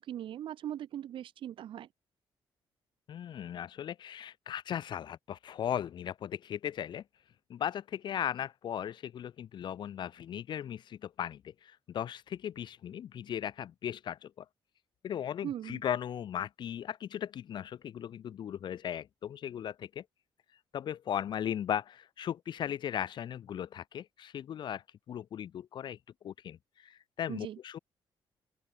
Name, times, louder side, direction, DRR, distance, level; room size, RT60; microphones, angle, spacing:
voice 1, 0.0-1.9 15.4-15.8 27.3-27.6, right 11 dB, 60° right, 3.4 m, -39 dB
voice 2, 3.1-7.0 7.5-14.4 15.0-20.0 20.7-26.0 26.2-27.8, left 10 dB, 50° left, 2.7 m, -37 dB
open air
cardioid pair, 175°, 10 cm